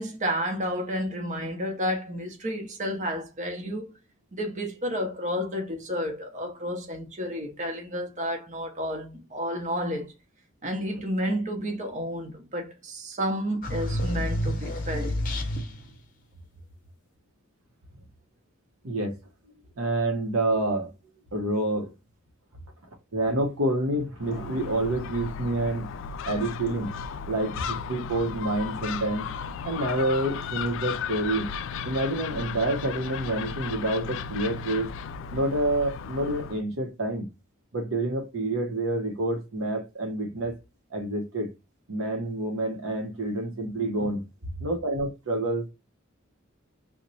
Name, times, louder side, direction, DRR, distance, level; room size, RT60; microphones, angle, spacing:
voice 1, 0.0-3.8 4.3-10.1 10.6-15.2, equal, 35° right, 0.8 m, -31 dB
sound 1, 13.6-16.0, equal, 45° left, 0.7 m, -29 dB
voice 2, 18.8-19.2 19.8-20.9 21.3-21.9 23.1-25.9 26.2-26.9 27.3-29.3 29.6-31.5 31.8-34.9 35.3-37.3 37.7-40.5 40.9-41.5 41.9-44.2 44.6-45.7, right 1 dB, 85° right, 0.8 m, -28 dB
Gull seagull, 24.2-36.6, left 6 dB, 65° left, 0.3 m, -35 dB
2.9 x 2.1 x 3.9 m
head